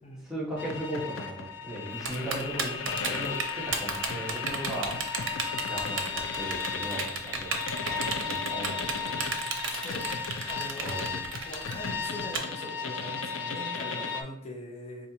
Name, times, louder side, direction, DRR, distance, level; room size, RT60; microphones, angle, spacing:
voice 1, 0.2-5.2 5.7-7.5 7.9-9.4 10.7-11.3, right 1 dB, 5° right, -7 dB, 0.9 m, -37 dB
sound 1, 0.6-14.2, left 5 dB, 85° left, 0.4 m, -34 dB
Typing, 2.1-12.4, right 5 dB, 75° right, 0.5 m, -33 dB
voice 2, 9.7-11.0 11.5-15.1, left 1 dB, 35° left, 0 dB, 0.7 m, -42 dB
4.2 x 2.4 x 2.7 m, 0.72 s
head